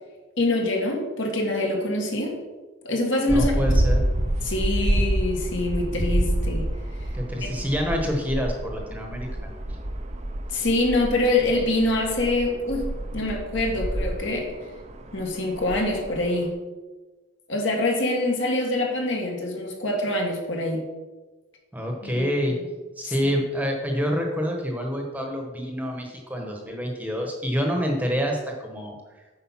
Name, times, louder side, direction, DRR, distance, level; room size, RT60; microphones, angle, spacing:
voice 1, 0.4-2.4 2.8-3.5 4.4-6.7 7.4-7.5 10.5-14.5 15.1-16.5 17.5-20.9 22.0-22.3, left 2 dB, 65° left, 0 dB, 1.9 m, -25 dB
voice 2, 3.3-4.0 7.1-9.5 21.7-22.5 23.0-29.0, equal, 10° right, 1 dB, 1.1 m, -27 dB
sound 1, 3.3-16.5, right 1 dB, 35° right, 0.6 m, -28 dB
8.6 x 5.0 x 5.7 m, 1.2 s
head